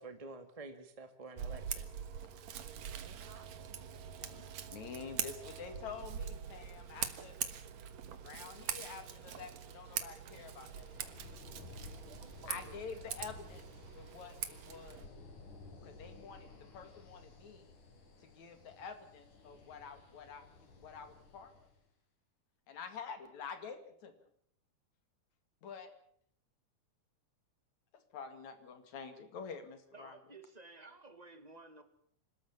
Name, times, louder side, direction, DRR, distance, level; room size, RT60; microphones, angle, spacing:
voice 1, 0.0-1.9 3.2-3.5, right 3 dB, 15° right, 7 dB, 1.3 m, -49 dB
Scissors, 1.4-15.1, right 9 dB, 65° right, 2.5 m, -43 dB
voice 2, 4.7-7.4 8.2-11.2 12.5-13.7 14.0-15.1 15.8-17.7 18.2-20.5 20.8-21.7 22.7-24.1 25.6-25.9 27.9-30.2, left 6 dB, 65° left, 8 dB, 3.5 m, -48 dB
sound 1, 10.1-21.8, left 3 dB, 85° left, 5.1 m, -55 dB
voice 3, 12.0-12.8 29.9-31.8, right 3 dB, 30° right, 9 dB, 0.7 m, -54 dB
27.0 x 13.0 x 8.7 m, 0.65 s
omnidirectional pair, 3.5 m